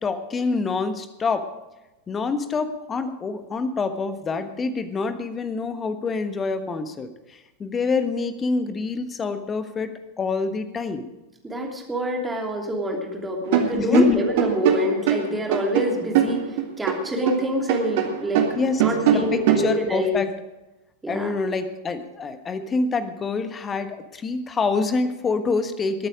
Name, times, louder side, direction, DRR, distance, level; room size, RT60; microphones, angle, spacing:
voice 1, 0.0-1.5 2.1-11.0 13.7-14.2 18.6-20.3 21.1-26.1, left 4 dB, 20° left, 10 dB, 1.3 m, -26 dB
voice 2, 11.4-18.4 18.8-20.2 21.0-21.3, equal, 10° right, 1 dB, 3.0 m, -26 dB
sound 1, 13.5-17.4 17.7-19.7, right 8 dB, 50° right, 1.8 m, -22 dB
20.5 x 8.9 x 5.1 m, 1.0 s
figure-of-eight pair, 90°, 0 cm